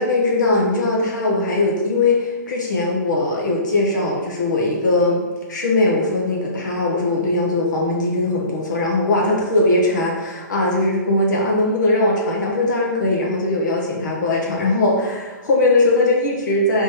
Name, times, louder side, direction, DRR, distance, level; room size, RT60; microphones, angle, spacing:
voice 1, 0.0-5.2 5.5-16.8, left 2 dB, 75° left, -2 dB, 1.0 m, -20 dB
3.6 x 3.0 x 3.1 m, 1.2 s
hypercardioid pair, 135°, 10 cm